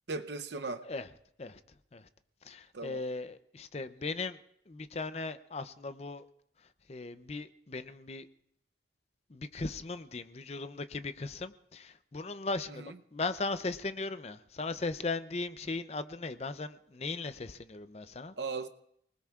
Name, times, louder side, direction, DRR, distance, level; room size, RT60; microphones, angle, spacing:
voice 1, 0.1-0.8 2.7-3.0 12.7-13.0 18.4-18.7, right 3 dB, 70° right, 0.7 m, -37 dB
voice 2, 2.5-4.4 4.7-6.2 6.9-8.3 9.3-18.3, left 3 dB, 35° left, 0.5 m, -38 dB
29.5 x 20.0 x 2.4 m
head